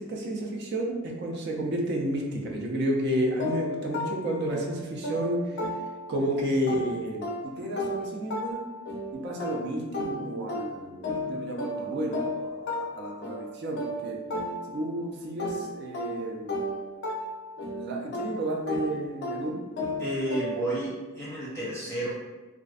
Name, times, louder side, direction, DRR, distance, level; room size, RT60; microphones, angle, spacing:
voice 1, 0.0-5.6 6.1-8.6 9.1-14.2 14.7-16.7 17.7-19.6, right 1 dB, 55° right, 0 dB, 0.4 m, -31 dB
sound 1, 3.4-6.3 6.7-15.0 15.4-20.8, left 1 dB, 55° left, 0.4 m, -34 dB
voice 2, 20.0-22.1, right 1 dB, 15° left, -8 dB, 0.8 m, -31 dB
2.5 x 2.1 x 2.4 m, 1.2 s
head